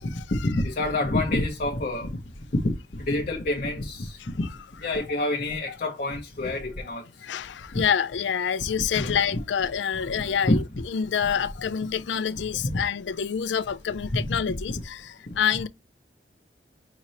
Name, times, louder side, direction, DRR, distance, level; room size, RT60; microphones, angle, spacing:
voice 1, 0.4-2.2 2.5-4.5 4.8-7.0 7.7-7.8 8.9-9.1 10.2-10.6 12.6-12.8 14.2-14.4 14.7-14.8, left 2 dB, 50° left, 0.7 m, -27 dB
voice 2, 7.2-10.6 10.9-15.7, left 7 dB, 90° left, 0.4 m, -27 dB
5.0 x 2.8 x 3.1 m
head